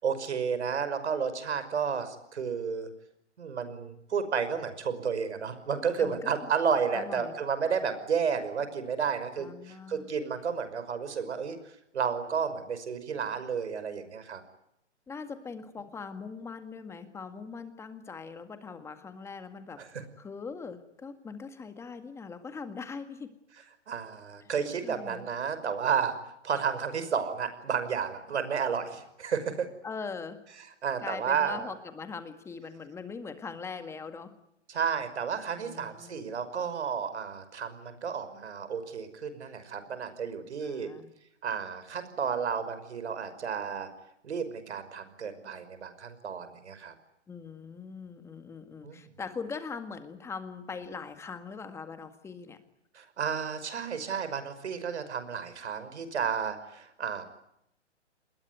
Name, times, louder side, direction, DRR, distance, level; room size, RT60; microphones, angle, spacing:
voice 1, 0.0-2.9 3.4-11.6 11.9-14.4 19.8-20.0 23.9-29.7 30.8-31.7 34.7-40.9 41.4-43.9 44.2-46.9 48.8-49.1 52.9-57.2, right 6 dB, 65° right, 11 dB, 5.8 m, -32 dB
voice 2, 6.0-6.3 6.9-7.3 9.4-10.1 15.1-19.8 20.2-23.3 24.4-24.5 24.8-25.2 29.8-30.4 31.0-34.3 35.6-36.3 40.6-41.1 47.3-52.6, left 5 dB, 5° left, 9 dB, 1.9 m, -41 dB
29.0 x 21.0 x 9.5 m, 0.79 s
hypercardioid pair, 150°, 36 cm